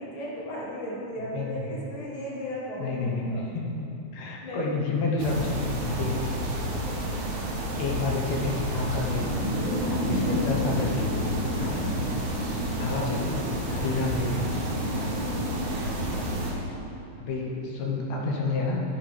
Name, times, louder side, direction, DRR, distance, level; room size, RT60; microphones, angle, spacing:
voice 1, 0.0-3.5 4.4-4.7 6.8-6.9 9.8-10.0 11.5-11.8 13.7-14.0 14.9-15.2, equal, 15° left, -5 dB, 1.2 m, -36 dB
voice 2, 1.3-1.7 2.8-3.6 4.1-6.2 7.8-9.5 10.0-11.9 12.8-13.4 13.8-14.5 17.2-18.8, left 3 dB, 70° left, -1 dB, 2.3 m, -29 dB
sound 1, 5.2-16.5, equal, 80° right, 2.9 m, -29 dB
12.5 x 7.8 x 5.1 m, 2.9 s
omnidirectional pair, 3.4 m